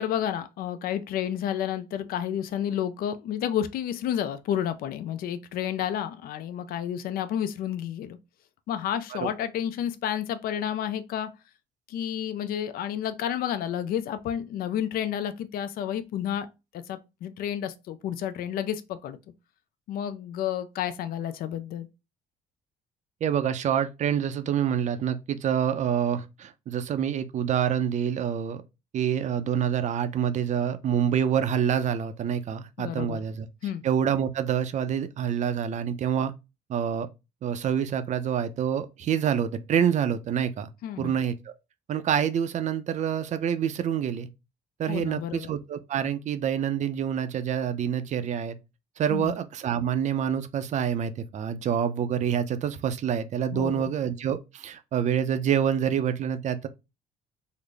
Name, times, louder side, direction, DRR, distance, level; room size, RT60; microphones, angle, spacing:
voice 1, 0.0-8.2 8.7-11.3 11.9-16.5 16.7-19.2 19.9-21.9 32.8-33.2 33.6-33.8 40.8-41.2 44.9-45.5 49.1-49.3 53.5-53.9, left 10 dB, 60° left, 0.4 m, -30 dB
voice 2, 23.2-28.6 28.9-33.5 33.8-36.3 36.7-37.1 37.4-40.7 41.0-41.4 41.9-44.3 44.8-48.6 49.0-56.7, right 8 dB, 45° right, 0.5 m, -27 dB
3.8 x 2.0 x 3.2 m
cardioid pair, 110°, 17 cm